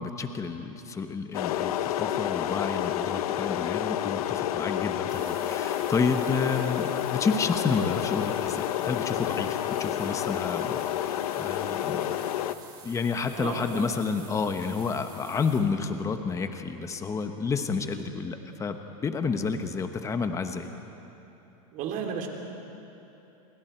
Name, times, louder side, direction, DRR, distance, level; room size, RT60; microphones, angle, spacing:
voice 1, 0.0-12.1 12.8-18.8 19.0-20.7, left 5 dB, 15° left, 7 dB, 1.1 m, -30 dB
sound 1, 1.3-12.5, left 12 dB, 75° left, 0.8 m, -29 dB
sound 2, 5.1-15.6, right 4 dB, 20° right, 5.5 m, -50 dB
voice 2, 13.3-13.8 21.7-22.3, right 7 dB, 45° right, 2 dB, 3.2 m, -33 dB
29.0 x 22.5 x 4.5 m, 3.0 s
supercardioid pair, 130°, 19 cm